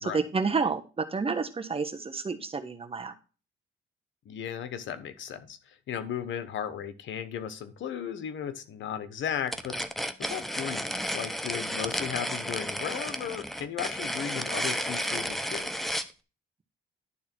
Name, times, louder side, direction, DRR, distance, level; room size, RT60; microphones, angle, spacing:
voice 1, 0.0-3.1, right 4 dB, 30° right, 7 dB, 1.3 m, -30 dB
voice 2, 4.2-9.8 10.2-15.7, left 9 dB, 70° left, 12 dB, 1.2 m, -36 dB
sound 1, 9.5-16.1, equal, ahead, 0.9 m, -32 dB
11.5 x 3.9 x 6.1 m, 0.33 s
cardioid pair, 90°, 20 cm